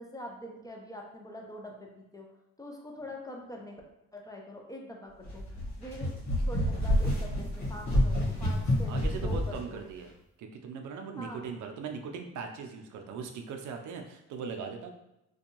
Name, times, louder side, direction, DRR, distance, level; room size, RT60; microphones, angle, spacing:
voice 1, 0.0-2.3 2.6-3.8 4.1-5.4 5.8-6.1 6.4-8.9 9.2-9.9 11.2-11.5, equal, 10° left, 0 dB, 0.4 m, -44 dB
sound 1, 5.2-9.6, equal, 60° left, 1.3 m, -28 dB
voice 2, 8.9-10.1 10.4-14.9, right 5 dB, 75° right, 4 dB, 0.5 m, -39 dB
2.6 x 2.3 x 2.9 m, 0.88 s
cardioid pair, 90°, 30 cm